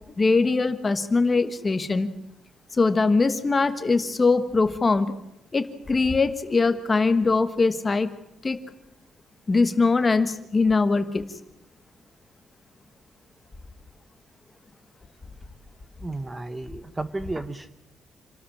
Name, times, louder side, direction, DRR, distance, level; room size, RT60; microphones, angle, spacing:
voice 1, 0.2-2.1 2.7-5.1 5.5-8.1 8.4-8.6 9.5-11.2, left 3 dB, 20° left, 11 dB, 1.3 m, -22 dB
voice 2, 16.0-17.7, right 2 dB, 15° right, 12 dB, 0.8 m, -33 dB
27.5 x 13.0 x 9.9 m, 0.84 s
cardioid pair, 170°, 0 cm